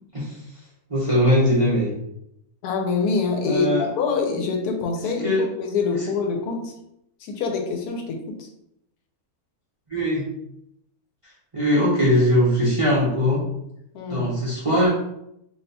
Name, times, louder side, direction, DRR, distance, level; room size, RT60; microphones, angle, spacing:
voice 1, 0.9-1.9 3.4-3.9 5.2-5.4 9.9-10.3 11.5-13.4 14.1-14.9, equal, 30° right, -7 dB, 0.6 m, -20 dB
voice 2, 2.6-6.7 7.2-8.5 13.9-14.3, left 4 dB, 90° left, 3 dB, 1.2 m, -25 dB
2.8 x 2.2 x 4.0 m, 0.80 s
omnidirectional pair, 1.6 m